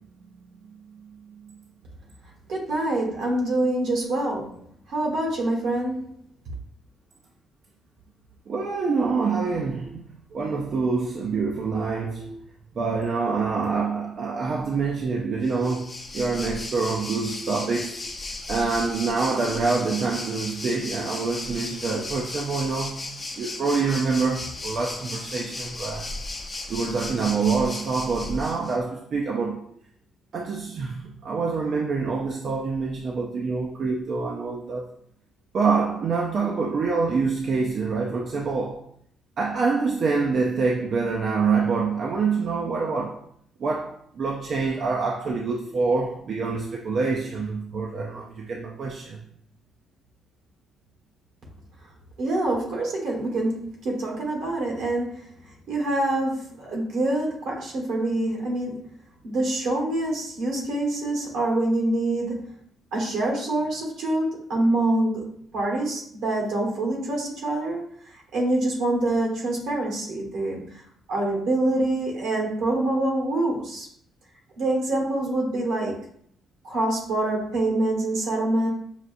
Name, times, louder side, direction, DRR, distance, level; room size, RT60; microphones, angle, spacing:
voice 1, 2.5-4.6 4.9-6.0 52.2-58.9 59.2-62.5 62.9-70.8 71.1-73.9 74.6-76.0 76.6-78.7, right 2 dB, 80° right, 1.3 m, -26 dB
voice 2, 8.5-10.0 10.3-12.4 12.8-18.0 18.5-23.1 23.4-26.1 26.7-29.7 30.3-34.9 35.5-38.8 39.4-43.2 43.6-49.2, right 4 dB, 55° right, 0.5 m, -26 dB
Waves surf, 15.4-28.8, left 2 dB, 30° left, 0.7 m, -35 dB
5.6 x 2.4 x 2.5 m
cardioid pair, 90°, 0 cm